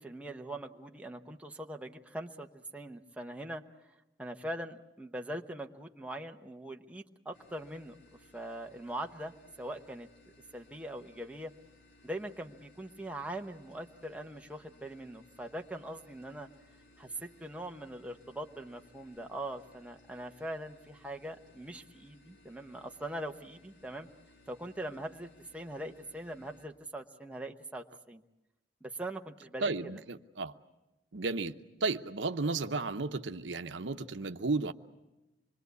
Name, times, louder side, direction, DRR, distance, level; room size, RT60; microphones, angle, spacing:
voice 1, 0.0-3.6 4.2-8.0 8.3-10.1 10.5-11.5 12.0-16.5 17.0-24.1 24.5-28.2 28.8-30.0, right 1 dB, 5° right, 0.9 m, -42 dB
sound 1, 7.3-26.6, left 2 dB, 75° left, 3.8 m, -62 dB
voice 2, 29.6-30.5 31.1-34.7, right 3 dB, 80° right, 0.9 m, -33 dB
26.0 x 22.5 x 8.2 m
head